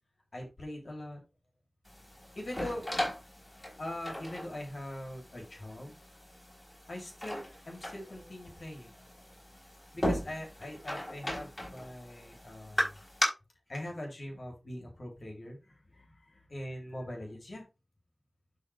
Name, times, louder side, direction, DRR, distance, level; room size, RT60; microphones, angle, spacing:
voice 1, 0.3-1.2 2.3-2.8 3.8-6.0 6.9-8.9 9.9-13.0 13.7-17.6, left 1 dB, 60° left, 1 dB, 3.0 m, -42 dB
sound 1, 1.8-13.2, left 1 dB, 20° left, 5.0 m, -38 dB
12.0 x 4.0 x 3.3 m, 0.26 s
wide cardioid pair, 50°, 0 cm